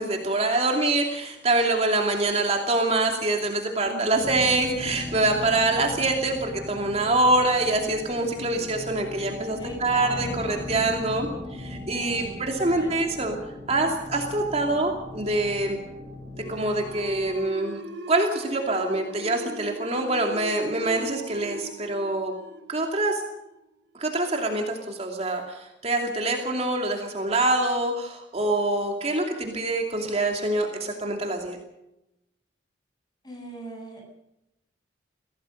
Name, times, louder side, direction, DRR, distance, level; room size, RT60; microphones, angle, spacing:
voice 1, 0.0-13.3 13.7-15.8 16.5-17.8 18.1-22.3 22.7-23.2 24.0-31.6, right 2 dB, 35° right, 2 dB, 2.7 m, -25 dB
voice 2, 3.8-4.5 8.5-8.7 9.6-10.7 12.2-12.9 33.2-34.0, right 1 dB, 20° left, 1 dB, 7.9 m, -41 dB
sound 1, 4.1-17.5, left 1 dB, 5° left, 6.2 m, -38 dB
sound 2, 16.4-23.6, right 1 dB, 75° right, 5.0 m, -39 dB
24.0 x 17.0 x 6.6 m, 0.89 s
head